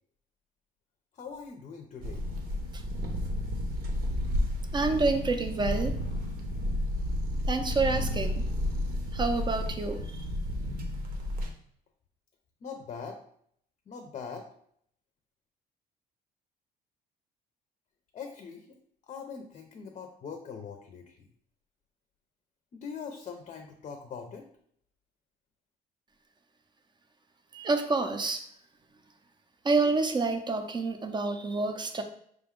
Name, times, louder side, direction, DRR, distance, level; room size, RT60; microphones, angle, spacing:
voice 1, 1.1-2.2 12.6-13.2 13.9-14.5 18.1-18.7 19.1-21.2 22.7-24.5, left 6 dB, 40° left, 4 dB, 0.6 m, -42 dB
sound 1, 2.0-11.5, left 1 dB, 60° right, 0.8 m, -31 dB
voice 2, 4.7-6.0 7.5-8.4 9.1-10.3 27.5-28.4 29.6-32.0, right 3 dB, 25° right, 7 dB, 0.6 m, -28 dB
4.9 x 2.2 x 3.6 m, 0.66 s
cardioid pair, 110°, 17 cm